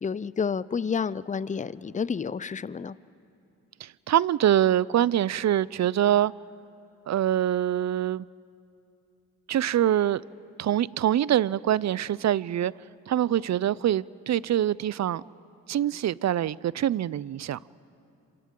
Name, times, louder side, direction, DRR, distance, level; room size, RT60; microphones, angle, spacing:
voice 1, 0.0-3.0, left 6 dB, 20° left, 0.5 m, -30 dB
voice 2, 3.8-6.3 7.1-8.3 9.5-10.2 10.6-12.7 13.1-15.2 15.7-17.6, right 11 dB, 50° right, 0.4 m, -24 dB
27.0 x 25.5 x 3.8 m
supercardioid pair, 50°, 36 cm